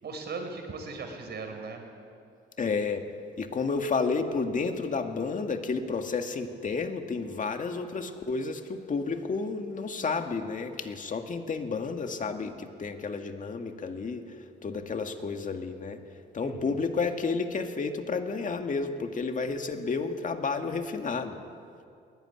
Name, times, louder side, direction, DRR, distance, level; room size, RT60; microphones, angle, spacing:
voice 1, 0.0-1.8 16.4-16.8, right 4 dB, 55° right, 4 dB, 5.0 m, -38 dB
voice 2, 2.6-3.1 3.4-14.2 14.6-16.0 16.3-21.4, left 4 dB, 40° left, 5 dB, 2.1 m, -31 dB
22.0 x 17.5 x 9.8 m, 2.5 s
cardioid pair, 90°, 20 cm